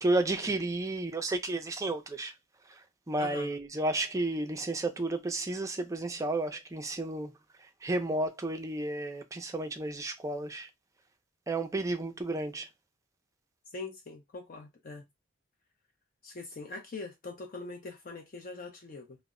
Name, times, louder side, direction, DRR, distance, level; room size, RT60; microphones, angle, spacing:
voice 1, 0.0-2.3 2.7-2.8 3.1-7.3 7.8-10.7 11.5-12.7, right 2 dB, 15° right, 0.4 m, -32 dB
voice 2, 3.2-3.5 13.7-15.0 16.2-19.2, left 3 dB, 45° left, 0.5 m, -42 dB
2.0 x 2.0 x 3.5 m
head